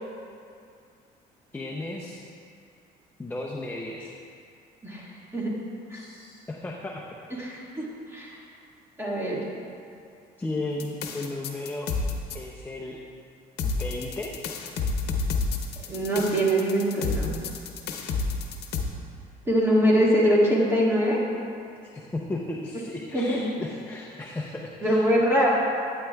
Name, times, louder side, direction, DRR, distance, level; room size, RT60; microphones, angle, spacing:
voice 1, 1.5-2.2 3.2-4.1 5.9-7.3 10.4-11.9 12.3-13.0 13.6-14.3 21.8-25.1, left 2 dB, 10° left, -2 dB, 0.6 m, -35 dB
voice 2, 7.4-7.9 8.1-8.3 9.0-9.4 15.9-17.3 19.5-21.2 23.1-23.4 24.8-25.5, equal, 15° right, -5 dB, 1.9 m, -23 dB
sound 1, 10.8-12.4 13.6-18.8, left 4 dB, 75° left, 0.9 m, -29 dB
12.0 x 9.0 x 2.3 m, 2.4 s
cardioid pair, 110°, 17 cm